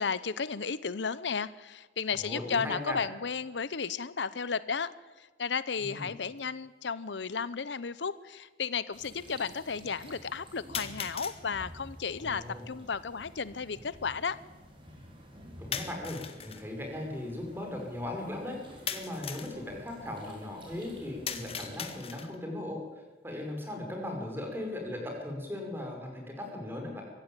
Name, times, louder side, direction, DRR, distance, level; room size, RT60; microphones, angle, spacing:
voice 1, 0.0-4.9 5.2-14.4, left 5 dB, 80° left, 17 dB, 0.8 m, -34 dB
voice 2, 2.2-3.0 5.8-6.1 12.2-12.7 15.6-18.6 18.9-27.0, left 1 dB, 10° right, 2 dB, 5.6 m, -38 dB
sound 1, 6.4-6.5 7.5-7.6 10.7-11.4 15.7-16.6 18.9-19.6 21.3-22.4, left 7 dB, 35° left, 1.7 m, -38 dB
sound 2, 8.9-22.1, equal, 30° right, 5.0 m, -51 dB
24.0 x 15.0 x 9.0 m, 1.2 s
head